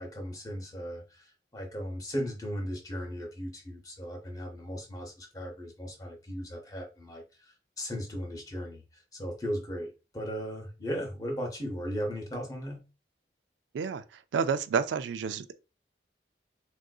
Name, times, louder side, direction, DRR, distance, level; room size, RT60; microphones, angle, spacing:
voice 1, 0.0-12.8, equal, 20° left, 0.7 m, -37 dB
voice 2, 14.3-15.5, right 6 dB, 85° right, 0.3 m, -29 dB
3.6 x 2.5 x 2.3 m
head